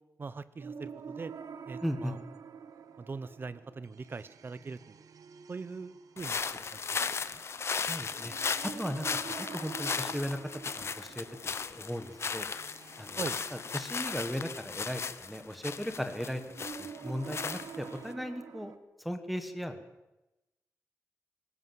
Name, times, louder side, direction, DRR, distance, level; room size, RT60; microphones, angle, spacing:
voice 1, 0.2-1.3 1.7-2.2 3.0-5.0 5.5-7.0 7.3-7.4 13.2-13.4, right 4 dB, 35° right, 15 dB, 0.8 m, -42 dB
sound 1, 0.6-18.8, right 6 dB, 90° right, 1.2 m, -48 dB
voice 2, 1.8-2.1 7.9-8.3 8.6-10.4 10.7-11.3 11.8-12.5 13.0-16.4 16.8-18.7 19.0-19.8, equal, ahead, 7 dB, 1.4 m, -37 dB
sound 2, 6.2-18.1, left 5 dB, 50° left, 0.8 m, -36 dB
19.5 x 17.5 x 7.8 m, 0.97 s
wide cardioid pair, 175°, 6 cm